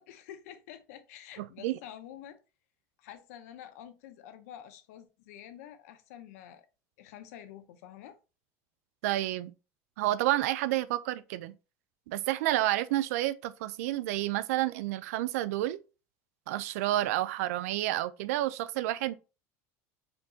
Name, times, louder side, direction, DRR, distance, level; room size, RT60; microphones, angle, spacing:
voice 1, 0.0-2.4 3.0-6.7 7.0-8.2, left 10 dB, 85° left, 0.6 m, -48 dB
voice 2, 1.4-1.8 9.0-9.5 10.0-11.5 12.1-15.8 16.5-19.1, right 15 dB, 90° right, 0.3 m, -30 dB
4.4 x 2.8 x 2.6 m
supercardioid pair, 135°, 8 cm